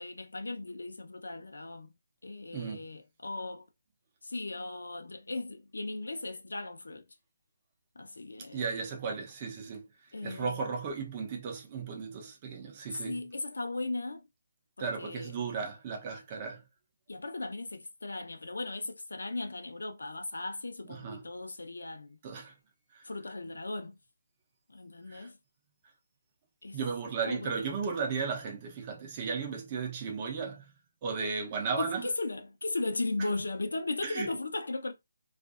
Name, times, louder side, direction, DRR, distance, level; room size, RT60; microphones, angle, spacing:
voice 1, 0.0-1.9 2.2-3.7 4.2-7.0 8.0-8.6 10.1-10.7 13.0-14.2 14.8-15.3 17.1-22.2 23.0-24.0 24.7-25.4 26.6-26.8 27.2-27.5 31.8-34.9, left 2 dB, 85° left, 0.7 m, -37 dB
voice 2, 2.5-2.9 8.5-9.9 10.2-13.2 14.8-16.6 20.9-21.2 22.2-22.5 22.9-23.1 25.1-25.3 26.7-30.7 31.0-32.1 33.2-33.3 34.0-34.3, right 5 dB, 25° right, 0.7 m, -35 dB
2.5 x 2.5 x 2.4 m
hypercardioid pair, 165°, 0 cm